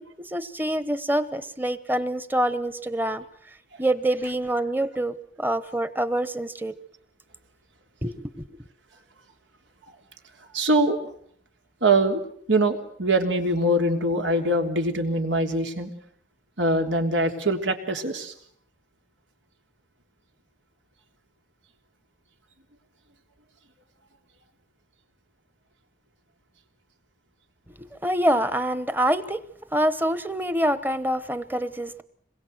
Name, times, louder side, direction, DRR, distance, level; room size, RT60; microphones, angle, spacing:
voice 1, 0.0-3.2 3.8-6.7 8.0-8.5 27.7-29.4 29.7-32.0, right 1 dB, 10° right, 15 dB, 1.0 m, -26 dB
voice 2, 10.5-11.0 11.8-12.2 12.5-15.9 16.6-18.3, right 1 dB, 90° right, 5 dB, 3.4 m, -23 dB
27.0 x 21.5 x 8.0 m, 0.64 s
head